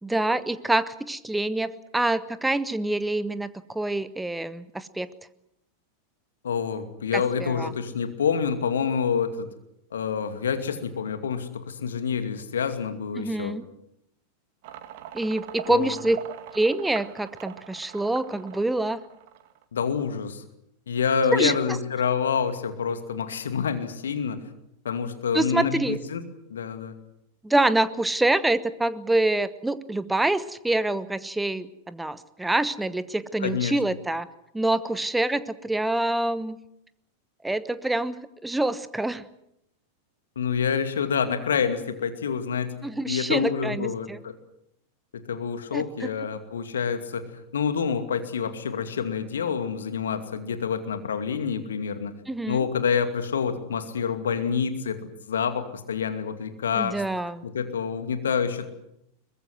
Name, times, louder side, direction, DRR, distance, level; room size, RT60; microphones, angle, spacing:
voice 1, 0.0-5.1 7.1-7.7 13.2-13.6 15.1-16.2 16.5-19.0 21.3-21.5 25.3-26.0 27.4-34.3 34.5-36.6 37.4-39.2 42.8-44.2 45.7-46.1 52.3-52.6 56.8-57.4, right 2 dB, 5° right, 15 dB, 1.0 m, -26 dB
voice 2, 6.4-9.5 9.9-13.6 15.7-16.0 19.7-20.4 20.9-24.4 24.8-26.2 26.5-27.0 33.4-33.7 40.4-42.7 43.1-44.4 45.3-52.1 52.5-57.0 57.4-58.7, left 6 dB, 65° left, 9 dB, 2.4 m, -27 dB
sound 1, 14.6-19.6, right 11 dB, 50° right, 2.2 m, -42 dB
23.0 x 21.0 x 8.0 m, 0.78 s
figure-of-eight pair, 90°, 0 cm